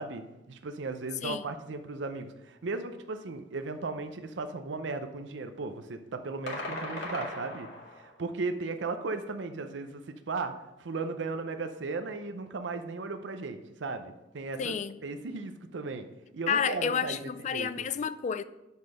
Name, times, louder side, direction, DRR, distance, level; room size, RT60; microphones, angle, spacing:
voice 1, 0.0-7.7 7.9-10.5 10.8-14.7 15.0-16.1 16.3-17.2 17.5-17.7, right 3 dB, 85° right, 0.6 m, -36 dB
sound 1, 6.5-8.2, left 2 dB, 70° left, 2.0 m, -38 dB
voice 2, 14.6-15.0 16.5-18.4, left 7 dB, 40° left, 0.3 m, -30 dB
6.0 x 5.5 x 6.4 m
head